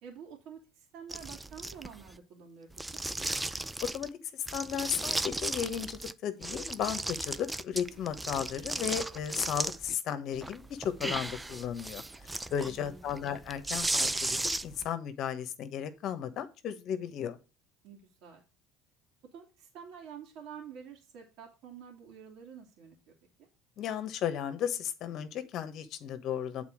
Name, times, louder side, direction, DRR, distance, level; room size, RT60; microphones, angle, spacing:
voice 1, 0.0-3.0 12.6-13.1 17.8-18.4 19.3-23.1 23.4-23.5, right 7 dB, 65° right, 2.5 m, -49 dB
sound 1, 1.1-2.1 2.7-4.1 4.5-6.1 6.4-9.9 10.3-14.9, right 2 dB, 10° right, 0.4 m, -35 dB
voice 2, 3.9-12.0 12.5-17.4 23.8-26.6, left 9 dB, 55° left, 1.2 m, -35 dB
8.2 x 4.2 x 6.2 m
supercardioid pair, 90°, 0 cm